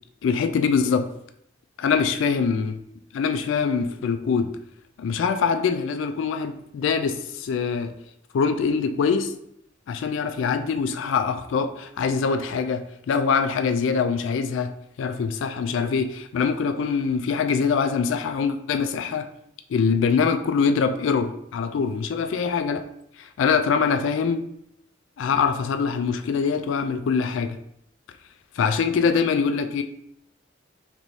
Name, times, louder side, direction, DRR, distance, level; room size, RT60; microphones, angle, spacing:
voice 1, 0.2-1.1 1.8-2.8 3.1-4.5 5.0-7.9 8.3-9.3 9.9-14.7 15.0-19.3 19.7-22.9 23.2-24.4 25.2-27.6 28.6-29.8, left 5 dB, 80° left, 8 dB, 0.3 m, -23 dB
4.6 x 3.0 x 2.7 m, 0.74 s
head